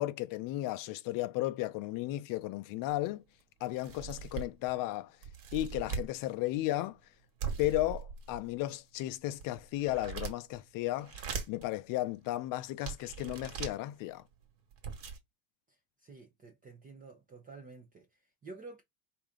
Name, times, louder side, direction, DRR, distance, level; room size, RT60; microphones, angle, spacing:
voice 1, 0.0-3.2 3.6-5.2 5.5-7.0 7.6-14.2, left 16 dB, 45° left, 0.5 m, -34 dB
sound 1, 2.9-3.0 3.4-3.5 3.8-4.7 5.2-6.1 7.4-8.5 9.1-10.6 11.0-11.6 12.3-12.4 12.8-13.8 14.4-14.5 14.7-15.2, right 6 dB, 60° right, 1.7 m, -40 dB
voice 2, 15.7-18.8, right 3 dB, 20° right, 0.7 m, -51 dB
4.9 x 2.9 x 3.6 m
cardioid pair, 160°, 46 cm